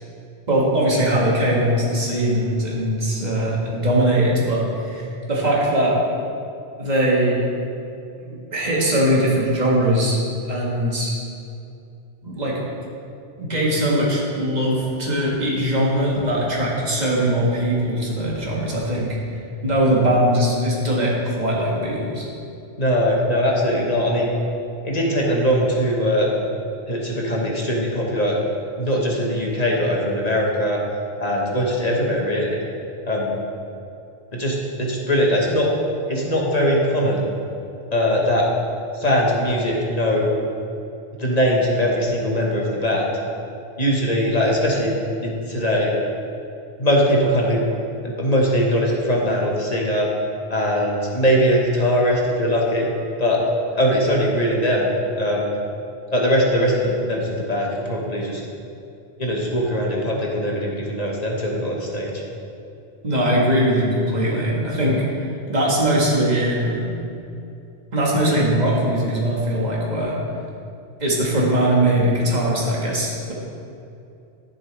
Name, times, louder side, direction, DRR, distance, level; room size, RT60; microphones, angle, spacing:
voice 1, 0.5-5.9 6.8-7.4 8.2-10.2 10.5-11.2 12.2-12.6 13.4-19.2 19.6-22.3 63.0-66.8 67.9-70.2 71.0-73.3, right 1 dB, 40° right, -5 dB, 1.9 m, -21 dB
voice 2, 22.8-24.3 24.8-26.3 26.9-28.4 28.8-30.8 31.2-32.6 33.0-33.4 34.3-35.7 36.1-37.3 37.9-38.5 38.9-40.3 41.2-43.1 43.8-44.9 45.2-45.9 46.8-47.6 48.0-50.1 50.5-52.9 53.2-53.4 53.7-54.9 55.2-55.5 56.1-58.4 59.2-62.1, equal, 40° left, -2 dB, 1.5 m, -21 dB
12.5 x 7.3 x 3.4 m, 2.6 s
omnidirectional pair, 1.1 m